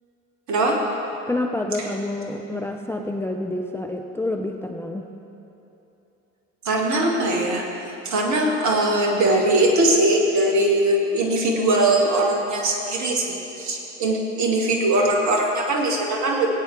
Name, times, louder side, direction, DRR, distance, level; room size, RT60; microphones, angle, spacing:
voice 1, 1.3-5.1, left 2 dB, 5° left, 2 dB, 0.7 m, -28 dB
voice 2, 6.6-16.5, right 1 dB, 50° right, 0 dB, 2.3 m, -21 dB
20.5 x 8.8 x 3.5 m, 3.0 s
figure-of-eight pair, 60°, 38 cm